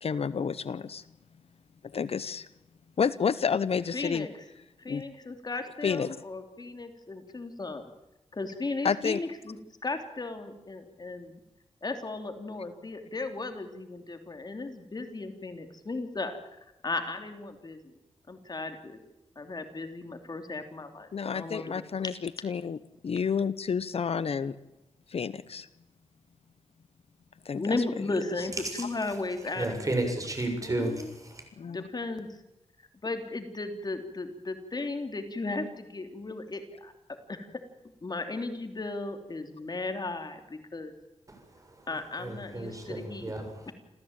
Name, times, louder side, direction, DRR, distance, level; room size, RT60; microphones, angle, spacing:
voice 1, 0.0-1.0 1.8-2.5 3.0-4.3 4.9-5.0 5.8-6.2 8.8-9.2 21.1-22.8 23.0-24.6 25.1-25.7 27.4-27.8 31.6-31.8, left 6 dB, 60° left, 15 dB, 0.9 m, -30 dB
voice 2, 3.9-4.4 4.8-7.9 8.3-9.6 9.8-11.4 11.8-16.4 16.8-17.8 18.3-19.0 19.4-21.8 27.5-30.0 30.6-31.1 31.7-32.3 33.0-36.9 37.3-37.5 38.0-40.9 41.9-43.3 43.7-43.8, left 3 dB, 35° left, 6 dB, 3.1 m, -35 dB
voice 3, 29.6-31.4 41.3-41.9 42.2-43.7, right 2 dB, 30° right, 4 dB, 7.2 m, -33 dB
28.0 x 15.5 x 8.9 m, 0.95 s
wide cardioid pair, 95°, 11 cm